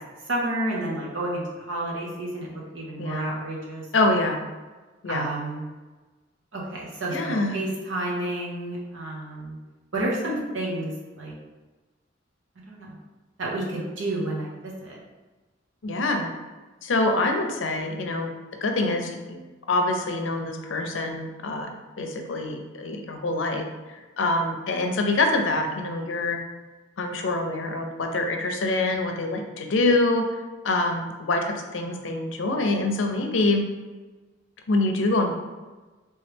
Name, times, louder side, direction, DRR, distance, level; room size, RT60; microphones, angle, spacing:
voice 1, 0.3-3.9 5.1-5.6 6.5-9.6 9.9-10.9 11.2-11.3 12.7-13.0 13.4-15.0, right 1 dB, 90° right, -3 dB, 1.0 m, -30 dB
voice 2, 3.0-3.3 3.9-4.4 5.0-5.3 7.1-7.6 15.8-16.3 16.8-18.3 18.6-19.4 19.7-26.4 27.0-30.2 30.6-33.6 34.7-35.3, left 2 dB, 85° left, 4 dB, 0.6 m, -25 dB
3.2 x 3.1 x 3.3 m, 1.2 s
head